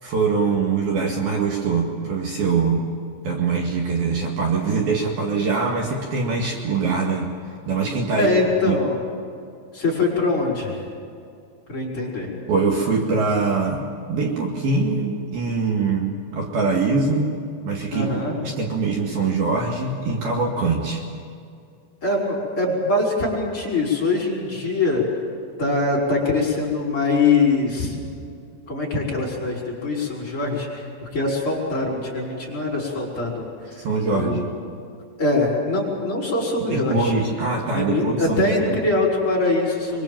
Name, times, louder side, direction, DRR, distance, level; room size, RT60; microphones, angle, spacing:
voice 1, 0.0-2.8 3.2-7.3 7.7-8.3 8.6-8.8 12.5-17.3 17.6-21.0 33.8-34.5 36.7-38.7, right 4 dB, 60° right, -1 dB, 3.5 m, -23 dB
voice 2, 8.2-9.0 9.7-10.8 11.7-12.3 17.9-18.4 22.0-25.0 25.6-28.0 28.7-34.5 35.2-37.2 37.7-40.0, left 3 dB, 25° left, -3 dB, 6.0 m, -23 dB
24.5 x 24.5 x 7.5 m, 2.4 s
omnidirectional pair, 5.4 m